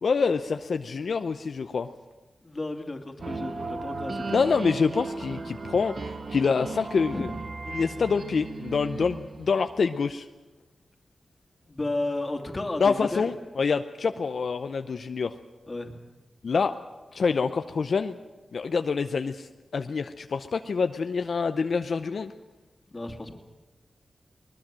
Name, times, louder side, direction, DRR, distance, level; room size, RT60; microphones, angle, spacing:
voice 1, 0.0-1.9 4.3-5.9 6.3-7.3 7.7-10.3 12.8-15.4 16.4-16.8 17.1-18.2 18.5-22.3, left 5 dB, 70° left, 8 dB, 0.7 m, -26 dB
voice 2, 2.4-4.5 7.1-7.3 11.7-13.3 15.7-15.9 22.9-23.3, left 2 dB, 30° left, 4 dB, 2.5 m, -33 dB
sound 1, 3.2-9.8, right 3 dB, 55° right, 1.8 m, -36 dB
21.0 x 20.5 x 7.5 m, 1.2 s
wide cardioid pair, 85°, 0 cm